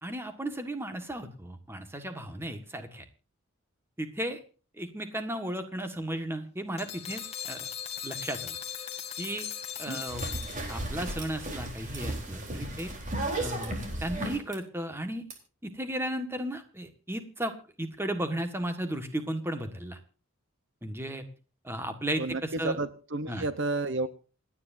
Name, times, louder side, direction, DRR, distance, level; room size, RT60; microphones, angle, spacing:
voice 1, 0.0-3.0 4.0-4.4 4.8-7.7 8.0-8.6 9.2-9.5 9.8-10.2 10.7-12.9 13.4-13.7 14.0-15.2 15.6-17.5 17.8-20.0 20.8-21.2 21.6-22.8 23.3-23.4, right 1 dB, 10° right, 8 dB, 1.6 m, -35 dB
sound 1, 6.8-11.1, left 9 dB, 30° left, 2.1 m, -39 dB
sound 2, 10.1-14.6 15.3-15.4, right 1 dB, 35° right, 3.8 m, -34 dB
voice 2, 22.2-24.1, right 2 dB, 55° right, 13 dB, 0.9 m, -31 dB
28.0 x 9.8 x 2.7 m, 0.37 s
head